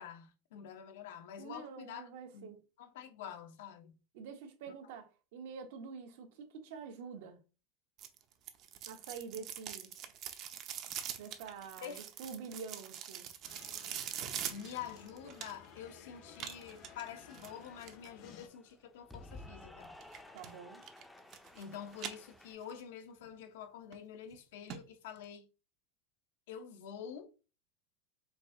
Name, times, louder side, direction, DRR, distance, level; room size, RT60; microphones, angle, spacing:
voice 1, 0.0-2.5 2.8-4.0 11.8-12.0 14.5-19.9 21.5-25.4 26.5-27.3, left 8 dB, 80° left, 0.8 m, -47 dB
voice 2, 1.4-2.6 4.1-7.4 8.9-9.9 11.2-13.3 20.3-20.8, right 6 dB, 75° right, 1.2 m, -47 dB
sound 1, 8.0-15.8 16.3-18.1 20.0-20.5 20.8-21.6 21.9-22.8 23.2-23.3 23.9-24.0 24.3-24.4 24.7-24.8 25.2-25.3, right 10 dB, 45° right, 0.6 m, -44 dB
sound 2, 13.4-18.5, left 8 dB, 50° left, 0.7 m, -57 dB
Cheering / Applause, 14.8-22.5, left 2 dB, 5° left, 0.5 m, -56 dB
4.7 x 2.6 x 3.7 m
supercardioid pair, 145°, 0 cm